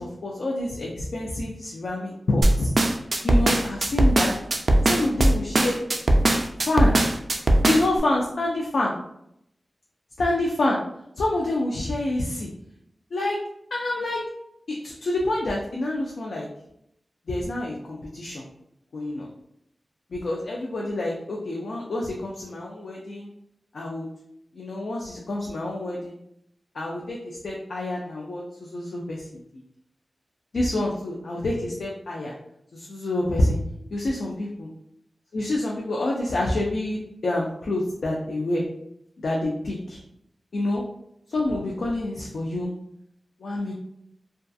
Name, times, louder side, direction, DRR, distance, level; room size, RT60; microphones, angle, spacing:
voice 1, 0.0-2.7 3.2-4.3 4.8-5.8 6.7-7.0 7.6-8.9 10.2-10.8 11.2-12.5 13.1-13.4 13.7-14.2 14.7-16.5 17.3-18.4 18.9-19.3 20.1-23.3 23.7-24.1 24.5-26.2 26.7-29.4 30.5-32.3 32.7-33.6 33.9-34.7 35.3-38.6 39.2-40.0 40.5-40.8 41.3-42.7 43.4-43.7, left 1 dB, 85° left, -3 dB, 0.4 m, -27 dB
sound 1, 2.4-8.0, right 1 dB, 50° right, 0.3 m, -19 dB
2.3 x 2.3 x 2.6 m, 0.76 s
wide cardioid pair, 90°, 0 cm